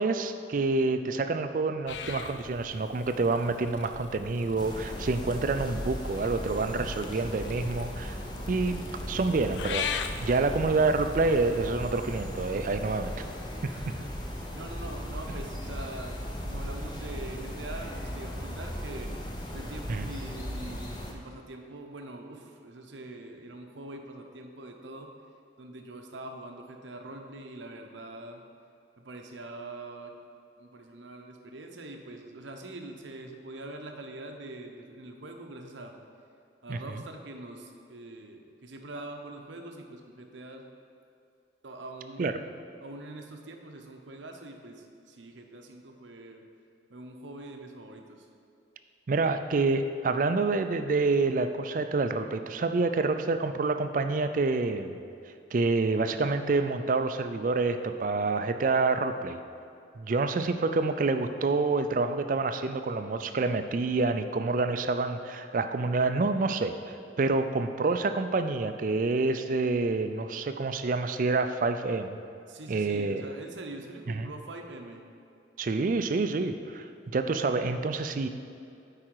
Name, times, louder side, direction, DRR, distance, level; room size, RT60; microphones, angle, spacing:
voice 1, 0.0-8.2 8.5-9.9 10.2-13.3 19.9-20.1 36.7-36.8 42.2-42.3 49.1-55.0 55.5-59.4 60.0-72.2 72.7-73.3 74.1-74.3 75.6-76.9 77.1-78.3, right 3 dB, 45° right, 8 dB, 0.4 m, -27 dB
Purr / Meow, 1.9-5.1 6.0-11.7, left 7 dB, 75° left, 0.4 m, -40 dB
sound 1, 4.6-21.1, equal, 25° left, 0.7 m, -37 dB
voice 2, 13.7-14.1 14.5-16.2 16.4-19.1 19.5-25.1 25.6-28.4 29.0-30.2 30.6-35.9 36.6-40.6 41.6-42.3 42.8-46.4 46.9-48.3 72.5-75.0, right 2 dB, 85° right, 4 dB, 0.7 m, -43 dB
8.7 x 4.8 x 4.6 m, 2.6 s
head